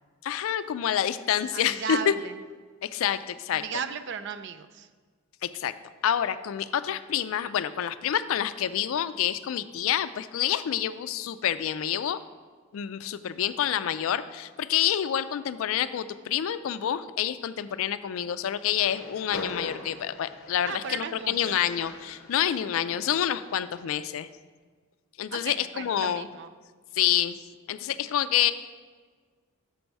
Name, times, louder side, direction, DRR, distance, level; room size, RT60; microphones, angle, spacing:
voice 1, 0.2-2.1 2.8-3.6 5.4-5.7 6.0-12.2 12.7-24.3 25.2-26.3 26.9-27.4 27.7-28.5, left 10 dB, 75° left, 13 dB, 0.3 m, -28 dB
voice 2, 1.5-2.4 3.5-4.9 20.7-21.6 25.3-26.5, right 6 dB, 55° right, 11 dB, 0.4 m, -36 dB
Train, 18.7-24.0, left 3 dB, 50° left, 0.7 m, -42 dB
6.9 x 4.6 x 5.3 m, 1.5 s
head